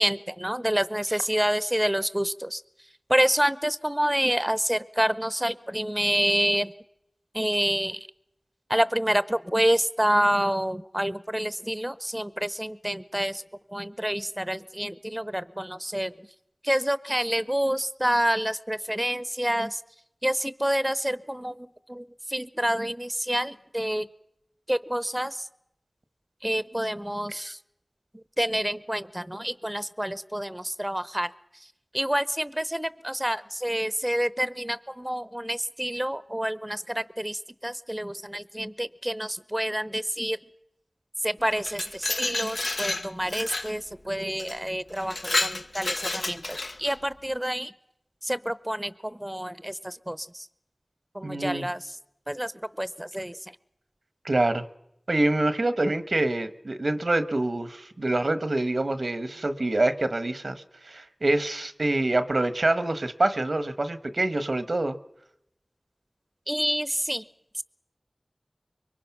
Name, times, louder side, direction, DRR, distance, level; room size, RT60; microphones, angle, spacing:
voice 1, 0.0-2.6 3.1-6.7 7.3-8.1 8.7-13.4 13.7-16.1 16.6-19.8 20.2-24.1 24.7-25.5 26.4-27.6 28.1-31.3 31.9-40.4 41.2-47.7 48.2-50.5 51.1-52.0 52.3-53.5 66.5-67.3 67.5-67.6, equal, 15° right, 15 dB, 0.8 m, -28 dB
Glass, 41.5-43.7 44.4-44.6 45.0-47.0, left 2 dB, 75° left, 0.9 m, -30 dB
voice 2, 51.2-51.6 54.2-54.6 55.1-65.0, right 2 dB, 75° right, 11 dB, 1.2 m, -26 dB
25.5 x 23.0 x 6.0 m, 0.82 s
wide cardioid pair, 40°, 0 cm